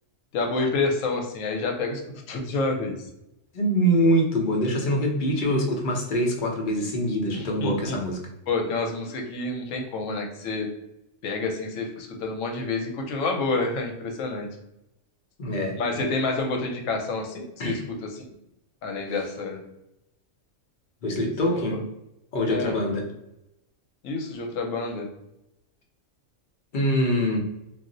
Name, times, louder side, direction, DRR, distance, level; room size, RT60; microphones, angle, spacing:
voice 1, 0.3-2.0 2.3-2.9 7.3-8.0 8.5-10.7 11.2-14.5 15.8-17.8 18.1-18.2 18.8-19.6 22.5-22.7 24.0-25.1, left 3 dB, 80° left, 2 dB, 1.0 m, -28 dB
voice 2, 3.5-8.2 15.4-15.8 17.6-17.8 21.0-21.8 22.3-23.1 26.7-27.4, equal, 50° left, 0 dB, 0.6 m, -24 dB
2.5 x 2.0 x 3.7 m, 0.87 s
omnidirectional pair, 1.3 m